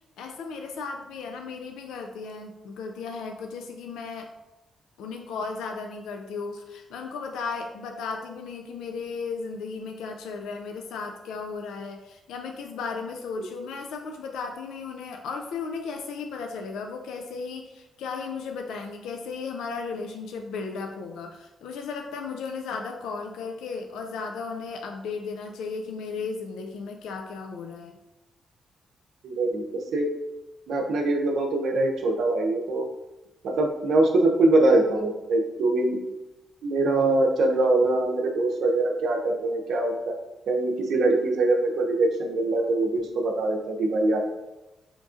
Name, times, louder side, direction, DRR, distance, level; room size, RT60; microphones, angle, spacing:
voice 1, 0.2-4.3 5.0-28.0, left 4 dB, 80° left, 3 dB, 0.3 m, -35 dB
voice 2, 29.2-29.6 29.9-30.1 30.7-32.9 33.4-36.0 36.6-40.1 40.5-44.2, right 2 dB, 75° right, 2 dB, 0.6 m, -23 dB
5.0 x 2.3 x 2.5 m, 1.0 s
supercardioid pair, 50°, 0 cm